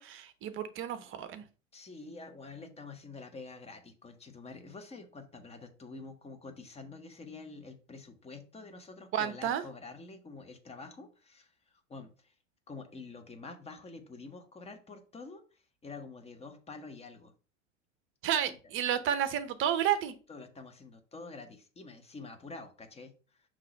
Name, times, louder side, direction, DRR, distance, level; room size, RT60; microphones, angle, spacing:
voice 1, 0.0-1.5 9.1-9.6 18.2-20.1, right 9 dB, 30° right, 0.8 m, -31 dB
voice 2, 1.7-12.3 12.7-17.3 18.5-18.6 20.3-23.4, left 3 dB, 15° left, 1.0 m, -47 dB
5.8 x 3.2 x 5.2 m
figure-of-eight pair, 85°, 39 cm